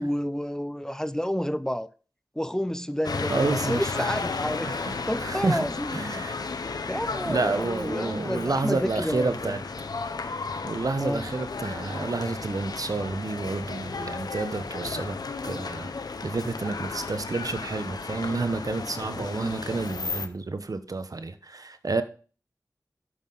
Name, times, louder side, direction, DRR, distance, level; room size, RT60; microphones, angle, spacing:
voice 1, 0.0-1.9 2.4-4.8 5.1-6.0 6.9-9.5 11.0-11.2 19.2-19.5, equal, 10° left, 0.7 m, -30 dB
sound 1, 3.0-20.3, left 4 dB, 85° left, 0.9 m, -34 dB
voice 2, 3.3-4.1 4.7-5.7 5.9-6.4 7.3-9.9 10.6-15.2 15.4-15.9 16.2-22.0, right 3 dB, 65° right, 1.0 m, -30 dB
9.8 x 7.5 x 4.0 m
cardioid pair, 45°, 7 cm